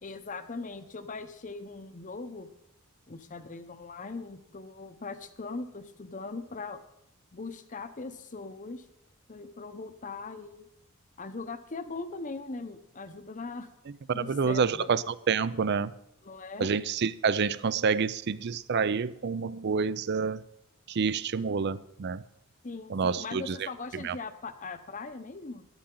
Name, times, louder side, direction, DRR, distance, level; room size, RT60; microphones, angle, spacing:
voice 1, 0.0-2.5 3.1-6.8 7.3-8.8 9.3-10.7 11.2-13.7 14.1-14.9 16.2-16.7 22.6-25.7, left 3 dB, 35° left, 10 dB, 0.8 m, -40 dB
voice 2, 14.1-15.9 16.6-20.4 20.9-22.2 22.9-24.2, right 5 dB, 50° right, 18 dB, 0.4 m, -28 dB
13.0 x 11.5 x 3.8 m, 0.86 s
head